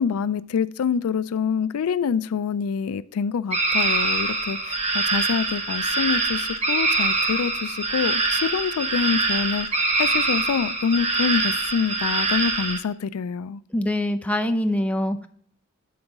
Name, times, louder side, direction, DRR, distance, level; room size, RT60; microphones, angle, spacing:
voice 1, 0.0-13.6, left 6 dB, 85° left, 16 dB, 0.4 m, -26 dB
sound 1, 3.5-12.8, right 3 dB, 30° right, 1.0 m, -24 dB
voice 2, 13.7-15.3, left 1 dB, 5° left, 7 dB, 0.5 m, -24 dB
11.0 x 3.9 x 3.5 m, 0.62 s
head